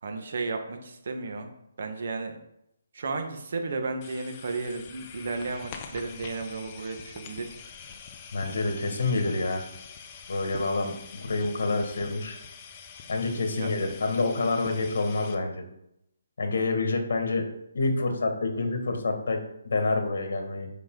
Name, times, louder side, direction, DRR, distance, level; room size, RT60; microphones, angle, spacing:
voice 1, 0.0-1.5 1.8-2.4 2.9-7.5 13.4-13.7, right 3 dB, 55° right, 5 dB, 1.4 m, -33 dB
sound 1, 4.0-15.3, left 6 dB, 25° left, 0.8 m, -45 dB
voice 2, 8.3-9.6 10.3-12.4 13.1-15.6 16.4-17.5 17.7-20.7, left 3 dB, 65° left, 4 dB, 1.9 m, -27 dB
8.2 x 5.6 x 3.9 m, 0.79 s
hypercardioid pair, 165°, 0 cm